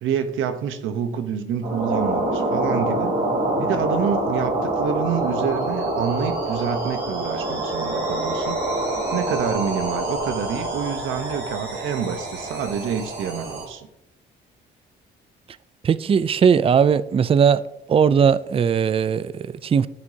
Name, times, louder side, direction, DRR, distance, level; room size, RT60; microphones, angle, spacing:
voice 1, 0.0-3.3 3.6-8.6 9.1-13.9, right 7 dB, 85° right, 0.9 m, -27 dB
sound 1, 1.6-13.6, right 1 dB, 60° right, 3.3 m, -26 dB
voice 2, 15.8-17.6 17.9-19.9, right 7 dB, 30° right, 0.3 m, -18 dB
13.0 x 5.0 x 2.8 m
cardioid pair, 90°, 20 cm